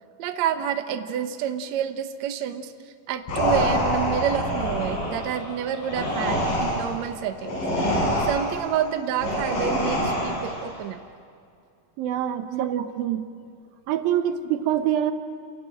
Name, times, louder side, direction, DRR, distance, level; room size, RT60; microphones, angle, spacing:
voice 1, 0.2-2.7 3.1-7.6 7.9-11.0 12.5-12.9, right 9 dB, 65° right, 7 dB, 2.0 m, -29 dB
sound 1, 3.3-10.7, equal, 75° left, 9.0 m, -26 dB
voice 2, 12.0-13.3 13.9-15.1, right 10 dB, 90° right, 8 dB, 2.9 m, -25 dB
28.5 x 17.5 x 8.9 m, 2.3 s
omnidirectional pair, 4.1 m